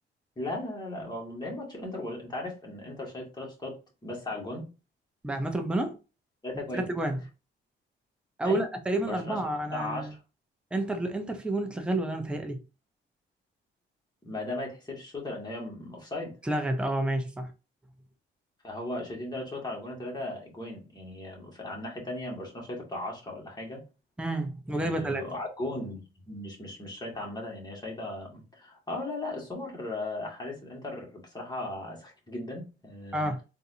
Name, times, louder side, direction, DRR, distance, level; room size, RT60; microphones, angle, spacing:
voice 1, 0.4-4.6 6.4-6.9 8.4-8.7 8.9-9.4 9.7-10.2 14.2-16.4 18.6-23.8 24.7-26.0 26.3-33.2, left 2 dB, 20° left, 1.9 m, -37 dB
voice 2, 5.2-6.0 6.7-7.2 8.4-10.1 10.7-12.6 16.4-17.5 24.2-25.3 33.1-33.4, right 1 dB, 5° right, 0.6 m, -30 dB
3.9 x 2.7 x 2.7 m
cardioid pair, 90°, 20 cm